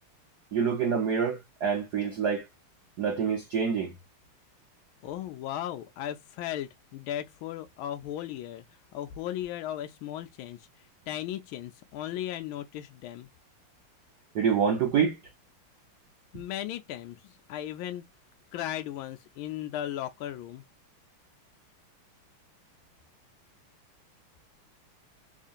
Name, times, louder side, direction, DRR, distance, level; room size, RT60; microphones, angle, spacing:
voice 1, 0.5-2.5 3.0-3.9 14.3-15.2, right 6 dB, 55° right, 1.3 m, -26 dB
voice 2, 5.0-8.6 8.9-10.6 11.1-13.3 16.3-18.0 18.5-20.6, left 12 dB, 80° left, 1.3 m, -36 dB
3.7 x 3.2 x 2.5 m
omnidirectional pair, 2.4 m